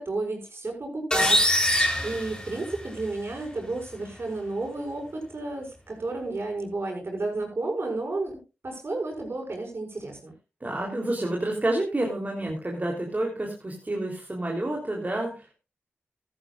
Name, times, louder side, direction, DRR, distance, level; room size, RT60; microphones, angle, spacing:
voice 1, 0.0-8.3 8.6-10.3, right 2 dB, 55° right, 2 dB, 6.6 m, -32 dB
sound 1, 1.1-3.1, left 1 dB, 15° left, 3.8 m, -23 dB
voice 2, 10.6-15.6, right 1 dB, 35° right, 0 dB, 3.5 m, -29 dB
15.0 x 13.5 x 2.5 m, 0.29 s
cardioid pair, 40°, 5 cm